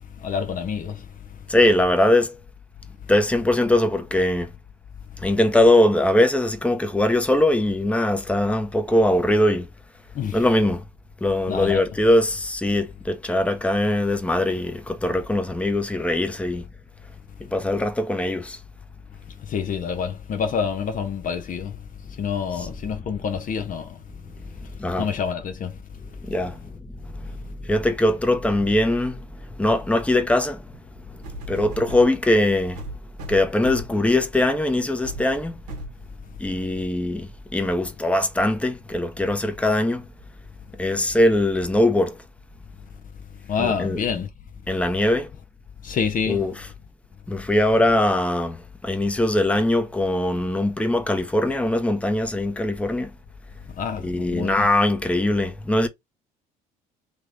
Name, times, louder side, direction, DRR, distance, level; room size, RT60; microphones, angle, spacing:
voice 1, 0.2-1.1 10.1-10.4 11.5-11.8 19.4-21.8 22.2-24.0 25.0-25.8 43.5-44.3 45.8-46.5 53.8-54.7, left 6 dB, 45° left, 0.7 m, -27 dB
voice 2, 1.5-2.3 3.1-4.5 5.2-9.7 10.3-10.8 11.2-16.6 17.5-18.6 24.8-25.1 26.3-26.6 27.3-27.4 27.6-29.2 29.6-30.6 31.5-32.8 33.3-35.6 36.4-40.0 40.8-42.2 43.6-44.0 44.7-45.3 46.3-46.5 47.3-53.1 54.0-55.9, left 1 dB, 5° left, 0.8 m, -21 dB
sound 1, 30.7-30.8 31.2-32.1 32.8-34.0 34.5-34.7 35.0-35.3 35.7-36.0 36.7-36.8, right 2 dB, 85° right, 1.0 m, -36 dB
3.3 x 2.9 x 3.5 m
hypercardioid pair, 60°, 20 cm